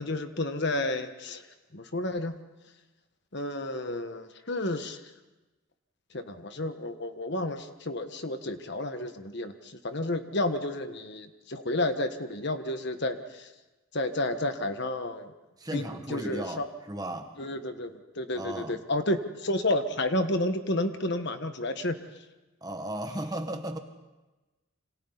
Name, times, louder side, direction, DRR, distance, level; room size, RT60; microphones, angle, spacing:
voice 1, 0.0-1.4 1.7-2.4 3.3-5.0 6.1-13.5 13.9-15.3 15.7-16.7 17.4-21.9, left 1 dB, 55° left, 8 dB, 1.4 m, -31 dB
voice 2, 15.6-17.3 18.3-18.8 22.6-23.8, right 1 dB, 20° right, 5 dB, 1.5 m, -35 dB
27.5 x 26.5 x 4.1 m, 1.1 s
head